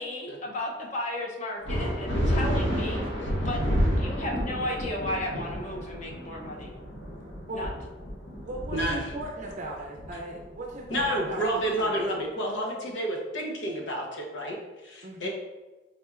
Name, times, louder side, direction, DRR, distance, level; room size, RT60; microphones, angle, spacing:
voice 1, 0.0-3.0 3.4-3.6 4.0-6.7 7.5-7.7, left 1 dB, 40° left, -1 dB, 0.6 m, -34 dB
sound 1, 1.7-11.6, equal, 70° left, 1.3 m, -30 dB
voice 2, 8.4-11.4 11.7-12.1 12.4-12.6 15.0-15.3, right 1 dB, 40° right, -1 dB, 0.5 m, -38 dB
voice 3, 10.9-15.3, right 1 dB, 85° left, 0 dB, 0.9 m, -30 dB
4.3 x 3.5 x 2.4 m, 1.2 s
head